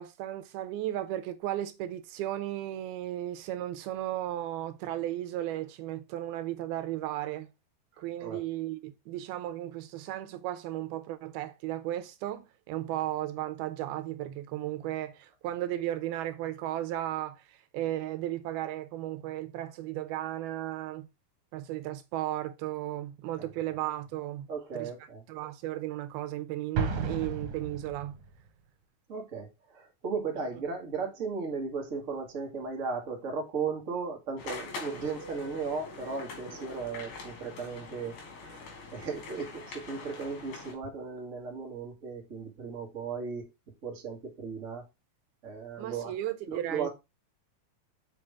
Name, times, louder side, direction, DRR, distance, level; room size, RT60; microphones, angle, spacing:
voice 1, 0.0-7.5 8.0-21.1 21.5-24.5 24.7-28.2 30.4-30.5 45.8-46.9, right 13 dB, 80° right, 2.5 m, -35 dB
voice 2, 24.5-25.2 29.1-38.6 38.9-43.4 43.8-44.8 45.4-46.1 46.5-46.9, right 5 dB, 40° right, 1.1 m, -36 dB
Explosion, 26.8-28.3, right 4 dB, 60° right, 2.4 m, -33 dB
sound 1, 34.4-40.7, left 3 dB, 65° left, 4.1 m, -44 dB
7.5 x 5.2 x 3.5 m
omnidirectional pair, 4.7 m